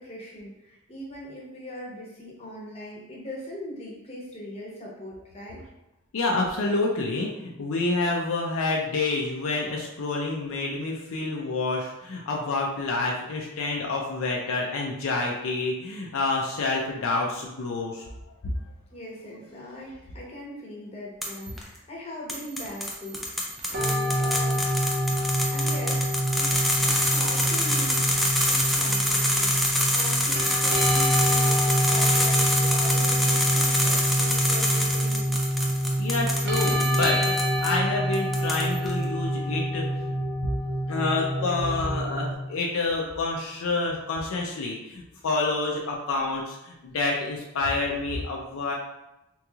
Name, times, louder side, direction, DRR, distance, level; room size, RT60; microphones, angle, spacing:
voice 1, 0.0-5.6 18.9-24.7 25.5-29.5 29.9-35.4, equal, 30° left, -4 dB, 0.8 m, -40 dB
voice 2, 6.1-18.1 36.0-40.1 40.9-48.7, left 3 dB, 70° left, -1 dB, 0.4 m, -28 dB
sound 1, 21.2-21.6 22.3-37.7 38.1-38.9, equal, ahead, 0.3 m, -26 dB
sound 2, 23.7-42.3, equal, 50° right, 0.7 m, -26 dB
3.8 x 2.9 x 2.3 m, 0.94 s
head